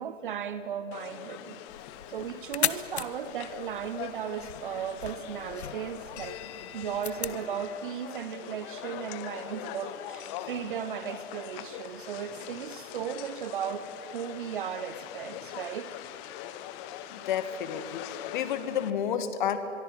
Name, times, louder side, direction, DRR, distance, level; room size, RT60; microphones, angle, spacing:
voice 1, 0.0-1.6 2.1-6.4 6.7-15.9, right 8 dB, 45° right, 13 dB, 1.1 m, -36 dB
sound 1, 0.9-18.9, left 11 dB, 20° left, 1.1 m, -42 dB
sound 2, 1.7-7.5, left 8 dB, 60° left, 1.2 m, -37 dB
voice 2, 17.1-19.6, left 9 dB, 40° left, 10 dB, 2.1 m, -31 dB
25.0 x 23.0 x 9.1 m, 2.9 s
figure-of-eight pair, 135°, 37 cm